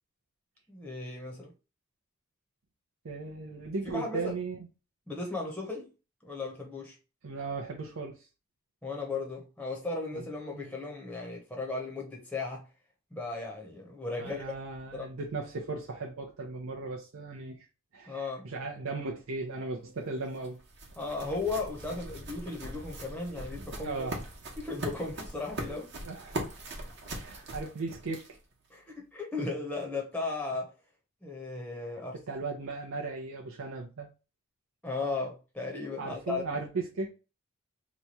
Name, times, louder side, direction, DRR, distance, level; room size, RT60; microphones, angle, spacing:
voice 1, 0.7-1.5 3.9-4.3 5.1-5.9 6.2-7.0 8.8-12.7 13.1-14.5 14.9-15.1 18.1-18.4 21.0-24.1 24.6-25.9 26.7-26.9 28.7-30.7 31.2-32.2 34.8-36.4, left 3 dB, 5° left, 0.7 m, -36 dB
voice 2, 3.0-4.6 7.2-8.3 10.1-10.3 10.5-10.7 14.2-17.7 17.9-20.6 23.6-24.2 26.0-26.5 27.1-28.2 32.3-34.1 36.0-37.1, right 3 dB, 85° right, 0.6 m, -37 dB
sound 1, 20.0-28.5, right 1 dB, 55° right, 1.0 m, -41 dB
3.0 x 2.3 x 4.0 m
head